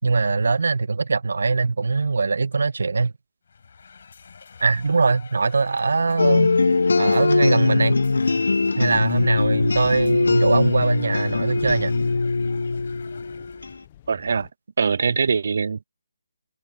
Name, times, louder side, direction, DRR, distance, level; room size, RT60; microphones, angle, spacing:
voice 1, 0.0-3.1 4.6-6.6 7.0-8.0 8.8-12.0, right 4 dB, 75° right, 1.5 m, -22 dB
sound 1, 3.4-13.9, left 5 dB, 55° left, 6.9 m, -47 dB
sound 2, 6.2-13.7, left 3 dB, 80° left, 1.1 m, -21 dB
sound 3, 8.9-14.5, left 12 dB, 30° left, 1.3 m, -41 dB
voice 2, 14.1-14.5 14.8-15.8, right 5 dB, 60° right, 0.4 m, -22 dB
hypercardioid pair, 165°, 0 cm